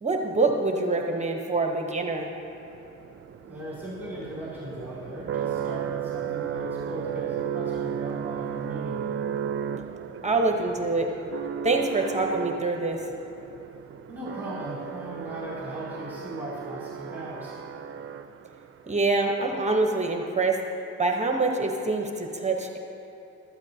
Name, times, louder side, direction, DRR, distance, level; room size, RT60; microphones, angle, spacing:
voice 1, 0.0-2.3 10.2-11.1 11.6-13.1 18.9-20.6 21.0-22.8, right 3 dB, 25° right, 2 dB, 0.9 m, -25 dB
sound 1, 2.5-18.7, right 8 dB, 45° right, 0.5 m, -34 dB
voice 2, 3.5-9.1 14.1-17.8, right 1 dB, 5° right, -8 dB, 2.6 m, -38 dB
15.5 x 13.0 x 2.8 m, 2.9 s
cardioid pair, 90°, 30 cm